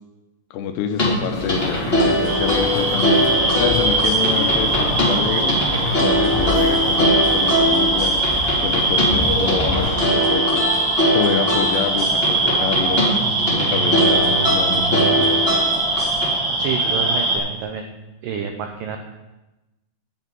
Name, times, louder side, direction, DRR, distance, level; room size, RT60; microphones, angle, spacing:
voice 1, 0.5-5.6 6.0-8.2 8.6-13.2 13.5-15.4, left 7 dB, 80° left, 6 dB, 2.8 m, -27 dB
sound 1, 0.9-16.3, equal, 20° left, 1.6 m, -22 dB
sound 2, 1.3-10.0, left 2 dB, 55° left, 0.8 m, -28 dB
sound 3, 2.3-17.4, right 2 dB, 50° right, 2.9 m, -21 dB
voice 2, 16.6-17.8 18.2-19.0, right 7 dB, 80° right, 5 dB, 1.9 m, -28 dB
10.0 x 6.4 x 8.9 m, 1.0 s
omnidirectional pair, 4.8 m